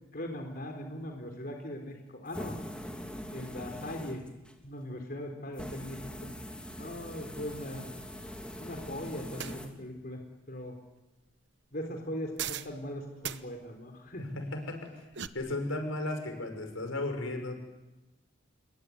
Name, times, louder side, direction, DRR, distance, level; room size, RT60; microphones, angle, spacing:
voice 1, 0.1-2.6 3.3-4.2 4.6-6.3 6.8-7.9 8.6-10.2 10.5-10.8 11.7-14.3, left 1 dB, 45° left, 3 dB, 3.9 m, -40 dB
sound 1, 2.3-4.6 5.5-9.7, equal, 5° left, 2.9 m, -42 dB
sound 2, 9.4-9.6 12.4-12.7 13.2-13.4 14.8-15.3, right 9 dB, 60° right, 1.0 m, -37 dB
voice 2, 14.5-14.9 15.3-17.6, left 2 dB, 90° left, 5 dB, 6.1 m, -34 dB
27.5 x 22.0 x 9.6 m, 1.1 s
head